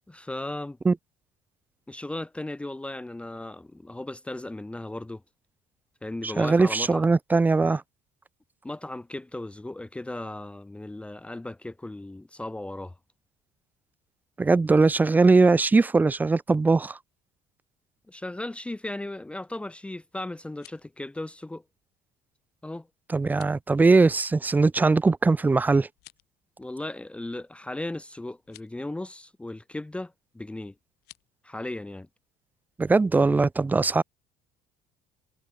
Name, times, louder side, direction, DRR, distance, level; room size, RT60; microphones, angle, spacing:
voice 1, 0.1-0.8 1.9-5.2 6.0-7.1 8.6-12.9 18.1-21.6 22.6-22.9 26.6-30.7 31.4-32.1, left 2 dB, 5° left, 1.3 m, -36 dB
voice 2, 6.2-7.8 14.4-17.0 23.1-25.9 32.8-34.0, right 3 dB, 10° right, 0.4 m, -20 dB
sound 1, 20.4-20.9 23.2-23.6 25.9-26.4 28.4-28.7 31.0-31.3, left 20 dB, 75° left, 5.4 m, -53 dB
cardioid pair, 150°, 17 cm